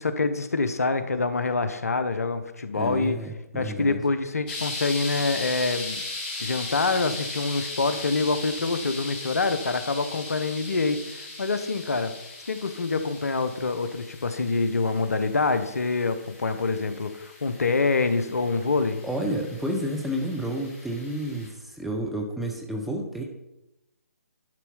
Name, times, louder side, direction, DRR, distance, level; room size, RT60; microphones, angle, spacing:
voice 1, 0.0-3.1 3.5-6.0 6.4-12.1 12.5-19.0, left 3 dB, 70° left, 10 dB, 0.9 m, -26 dB
voice 2, 2.7-4.0 19.0-23.2, right 1 dB, ahead, 1 dB, 0.9 m, -30 dB
sound 1, 4.5-21.5, left 2 dB, 35° left, 2.4 m, -38 dB
11.0 x 4.3 x 5.5 m, 0.90 s
figure-of-eight pair, 140°, 8 cm